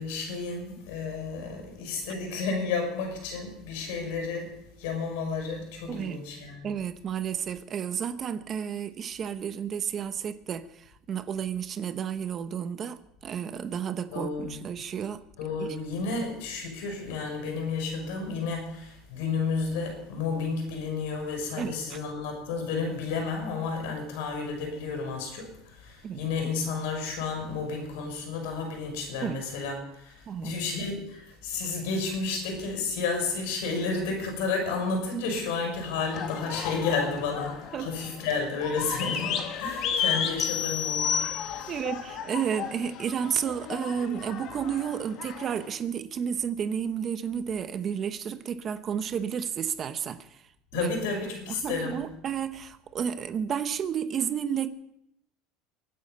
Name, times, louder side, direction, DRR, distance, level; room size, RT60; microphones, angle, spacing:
voice 1, 0.0-6.7 14.1-14.6 15.4-41.8 50.7-52.0, left 4 dB, 85° left, 6.5 m, -32 dB
voice 2, 5.9-6.2 6.6-13.0 13.2-15.2 15.6-15.7 21.6-22.0 26.0-26.3 29.2-29.4 30.3-30.6 37.7-37.9 41.7-50.4 50.7-50.9 51.5-54.7, right 8 dB, 35° right, 0.9 m, -31 dB
sound 1, 36.1-45.7, left 8 dB, 55° left, 2.0 m, -35 dB
sound 2, 40.4-41.9, left 8 dB, 30° left, 0.7 m, -30 dB
24.0 x 9.3 x 5.5 m
supercardioid pair, 130°, 0 cm